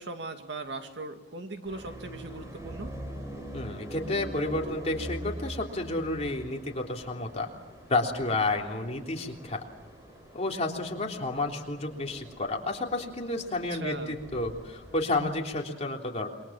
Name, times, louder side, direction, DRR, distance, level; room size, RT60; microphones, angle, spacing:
voice 1, 0.0-3.0 13.7-14.1, right 2 dB, 65° right, 6 dB, 2.4 m, -39 dB
sound 1, 1.6-15.6, right 1 dB, 15° right, 5.0 m, -44 dB
voice 2, 3.5-7.5 7.9-9.6 10.3-16.3, left 2 dB, 35° left, 1 dB, 3.4 m, -31 dB
27.5 x 23.5 x 7.5 m, 1.2 s
head